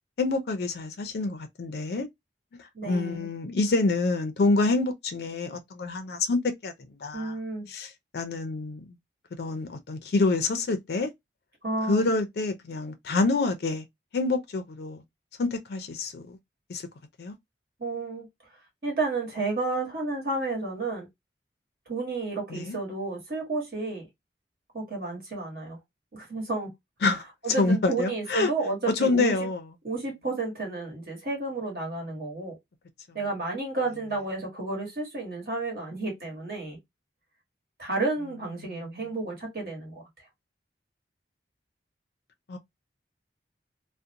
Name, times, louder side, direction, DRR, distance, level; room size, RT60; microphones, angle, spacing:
voice 1, 0.2-2.1 2.8-6.7 7.0-7.4 7.7-8.9 9.4-11.1 11.9-13.8 14.1-15.0 15.4-16.4 16.7-16.8 17.2-17.3 22.5-22.8 27.0-27.2 27.6-28.5 29.0-29.6 38.6-38.8 42.5-42.6, left 3 dB, 65° left, 0.4 m, -27 dB
voice 2, 2.7-3.3 7.1-7.7 11.6-12.1 17.8-18.3 18.8-21.1 21.9-24.1 24.7-25.8 26.1-26.7 27.4-29.5 29.8-32.6 33.1-36.8 37.8-40.0, right 3 dB, 55° right, 1.2 m, -31 dB
2.5 x 2.0 x 2.7 m
head